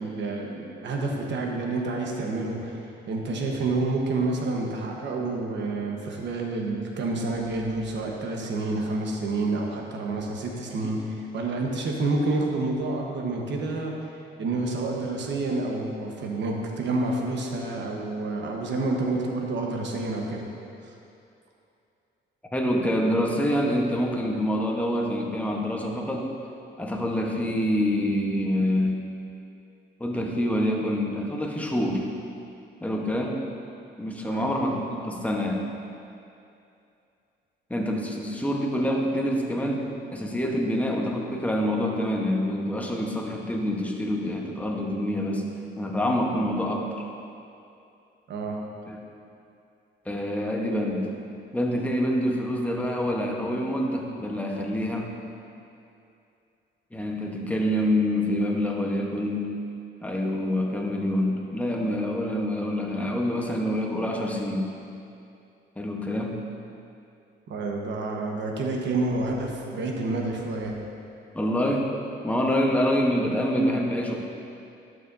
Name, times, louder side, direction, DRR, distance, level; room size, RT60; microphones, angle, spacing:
voice 1, 0.0-2.8 3.1-13.9 14.4-20.4 34.2-34.5 48.3-48.6 67.5-70.7, right 2 dB, 65° right, 0 dB, 1.1 m, -28 dB
voice 2, 22.5-26.3 26.8-29.0 30.0-32.1 32.8-33.4 34.0-35.6 37.7-45.5 45.8-47.1 48.9-49.0 50.0-51.1 51.5-55.1 56.9-59.5 60.0-64.7 65.8-66.4 71.3-71.9 72.2-74.2, equal, 5° left, 0 dB, 1.0 m, -26 dB
11.0 x 6.7 x 2.6 m, 2.6 s
cardioid pair, 90°, 20 cm